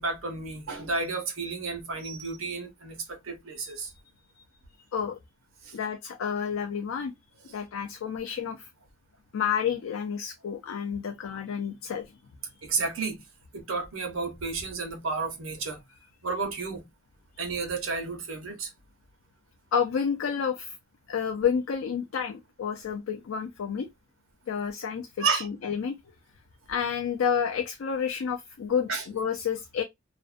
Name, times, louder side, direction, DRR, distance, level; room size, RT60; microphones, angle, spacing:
voice 1, 0.0-3.9 5.6-5.8 12.6-13.2 13.5-15.8 16.2-16.8 17.4-18.7 25.2-25.5 28.9-29.0, right 4 dB, 70° right, 0.9 m, -31 dB
voice 2, 5.7-7.1 7.5-8.7 9.3-12.1 19.7-20.8 21.1-23.9 24.5-26.0 26.7-29.8, left 7 dB, 75° left, 0.4 m, -30 dB
2.5 x 2.1 x 2.4 m
head